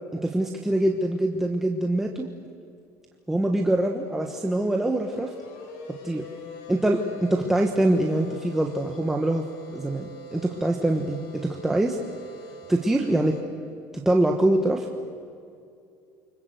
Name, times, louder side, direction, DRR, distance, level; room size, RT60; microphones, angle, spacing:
voice 1, 0.1-2.3 3.3-5.3 6.0-6.2 6.7-9.4 9.7-12.0 12.7-13.4 14.0-14.9, right 1 dB, 5° right, 1 dB, 1.2 m, -24 dB
sound 1, 3.3-13.4, equal, 90° left, 4.2 m, -44 dB
29.0 x 25.0 x 8.1 m, 2.5 s
cardioid pair, 170°, 7 cm